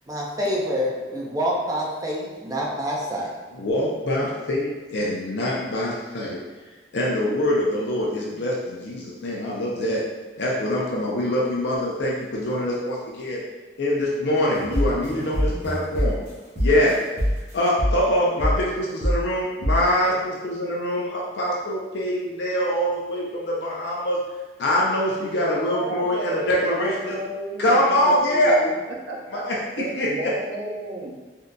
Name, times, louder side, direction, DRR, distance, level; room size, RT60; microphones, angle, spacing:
voice 1, 0.1-3.3, equal, 20° right, -3 dB, 0.5 m, -27 dB
voice 2, 3.6-6.4 6.9-10.0 10.4-13.4 13.8-16.2 16.6-16.9 17.5-24.2 24.6-26.9 27.6-28.6 29.3-29.6 30.0-30.3, left 1 dB, 75° left, -4 dB, 0.5 m, -24 dB
sound 1, 14.5-16.3 16.6-16.9 17.2-17.5 17.8-18.1 18.4-18.7 19.0-19.3 19.6-19.9, equal, 50° right, 1.0 m, -25 dB
voice 3, 25.6-28.7 29.1-29.4 29.8-31.1, right 2 dB, 75° right, -2 dB, 0.6 m, -32 dB
3.7 x 2.6 x 2.2 m, 1.3 s
head